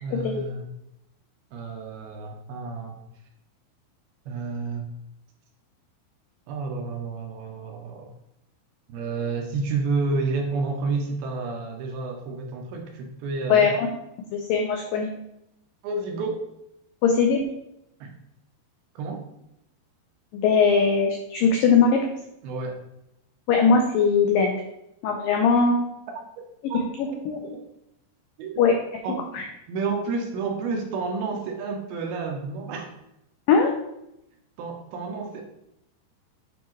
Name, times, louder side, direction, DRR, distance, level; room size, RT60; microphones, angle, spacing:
voice 1, 0.0-0.7 1.5-3.0 4.3-4.9 6.5-8.1 8.9-13.7 15.8-16.4 18.0-18.1 19.0-19.2 22.4-22.8 26.7-27.6 28.4-28.6 29.0-32.9 34.6-35.4, right 4 dB, 75° right, 2 dB, 2.4 m, -30 dB
voice 2, 13.5-13.9 14.3-15.1 17.0-17.4 20.3-22.0 23.5-24.6 25.0-25.8 27.0-27.4 28.6-28.7 29.3-29.4 33.5-33.7, left 5 dB, 90° left, 2 dB, 1.9 m, -20 dB
9.0 x 4.7 x 3.2 m, 0.83 s
omnidirectional pair, 4.8 m